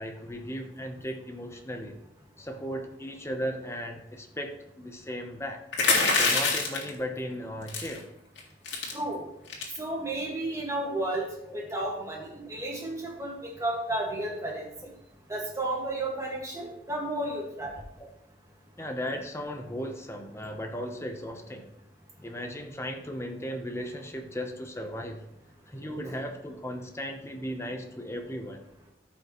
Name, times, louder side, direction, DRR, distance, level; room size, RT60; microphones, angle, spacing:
voice 1, 0.0-1.9 2.4-5.6 6.1-8.1 11.5-11.7 14.8-14.9 18.0-18.1 18.8-21.7 22.2-25.2 25.7-28.6, equal, 15° left, 4 dB, 0.9 m, -36 dB
sound 1, 5.7-6.9 7.7-8.0 8.4-8.5 8.7-8.9 9.5-9.8, left 4 dB, 80° left, 2.0 m, -24 dB
voice 2, 9.8-11.3 11.5-14.7 15.3-17.7, right 1 dB, 15° right, -1 dB, 1.8 m, -32 dB
13.5 x 5.6 x 3.1 m, 0.84 s
head